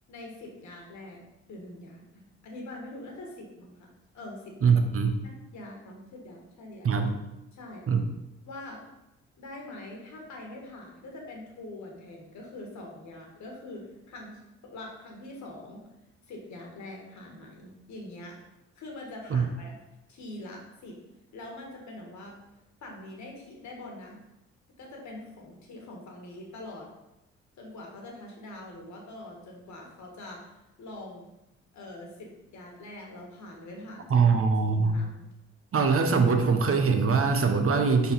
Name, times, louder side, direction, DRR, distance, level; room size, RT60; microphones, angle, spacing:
voice 1, 0.1-1.2 1.5-3.9 4.1-4.5 5.2-7.1 7.5-7.9 8.4-8.8 9.4-15.8 16.3-18.3 18.7-19.7 20.1-21.0 21.3-22.3 22.8-24.2 24.8-26.9 27.6-31.3 31.7-34.3 34.7-35.3, left 1 dB, 70° left, -1 dB, 1.7 m, -44 dB
voice 2, 4.6-5.2 6.8-7.2 7.9-8.0 19.3-19.4 34.1-35.0 35.7-38.1, right 5 dB, 50° right, 5 dB, 0.9 m, -22 dB
4.4 x 4.1 x 5.3 m, 0.94 s
supercardioid pair, 55°, 30 cm